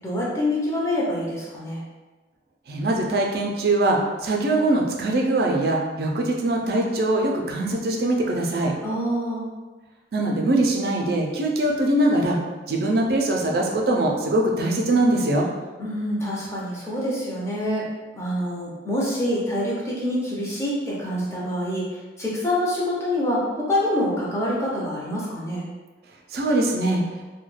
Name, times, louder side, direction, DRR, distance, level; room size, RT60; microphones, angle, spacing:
voice 1, 0.0-1.8 8.8-9.5 15.8-17.9 18.1-25.7, left 1 dB, 15° left, -6 dB, 0.6 m, -26 dB
voice 2, 2.7-8.7 10.1-12.4 12.7-15.5 26.3-27.0, right 2 dB, 55° right, 0 dB, 0.4 m, -22 dB
2.2 x 2.2 x 3.1 m, 1.2 s
head